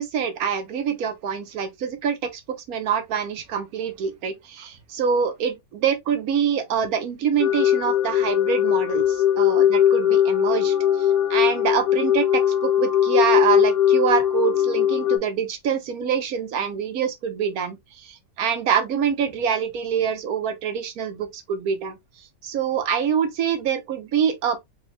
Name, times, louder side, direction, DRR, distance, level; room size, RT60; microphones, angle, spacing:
voice 1, 0.0-2.4 2.7-9.6 9.9-21.9 22.4-24.6, right 7 dB, 65° right, 1.1 m, -25 dB
sound 1, 7.4-15.2, left 10 dB, 70° left, 1.7 m, -20 dB
4.2 x 2.3 x 2.9 m
omnidirectional pair, 1.8 m